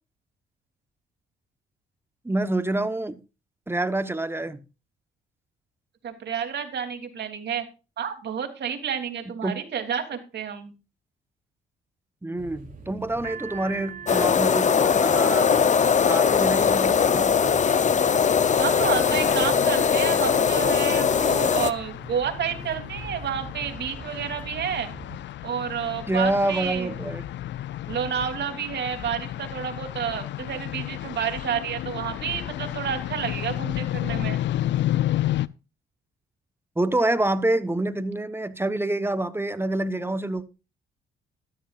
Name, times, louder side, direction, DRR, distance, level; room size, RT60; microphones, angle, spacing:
voice 1, 2.2-3.2 3.7-4.7 9.4-9.6 12.2-17.4 26.1-27.3 36.8-40.5, right 2 dB, 10° right, 1.2 m, -27 dB
voice 2, 6.0-7.6 8.0-10.7 18.6-24.9 25.4-26.9 27.9-34.4, right 7 dB, 60° right, 3.3 m, -30 dB
sound 1, 12.4-25.2, right 5 dB, 45° right, 3.2 m, -43 dB
sound 2, 14.1-21.7, left 6 dB, 35° left, 0.8 m, -20 dB
sound 3, 18.3-35.5, left 13 dB, 65° left, 0.6 m, -32 dB
14.0 x 13.0 x 2.5 m
cardioid pair, 90°, 20 cm